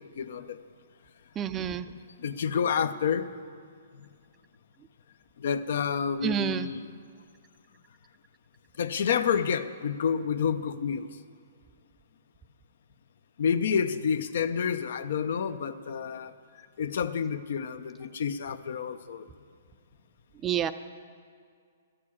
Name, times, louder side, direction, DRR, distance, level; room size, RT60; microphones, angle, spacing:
voice 1, 0.2-0.6 2.2-3.3 5.4-6.8 8.8-11.1 13.4-16.3 16.8-19.2, left 7 dB, 65° left, 12 dB, 0.6 m, -29 dB
voice 2, 1.4-1.9 6.2-6.7 20.4-20.7, right 9 dB, 20° right, 12 dB, 0.4 m, -28 dB
12.5 x 6.8 x 8.5 m, 2.2 s
hypercardioid pair, 145°, 0 cm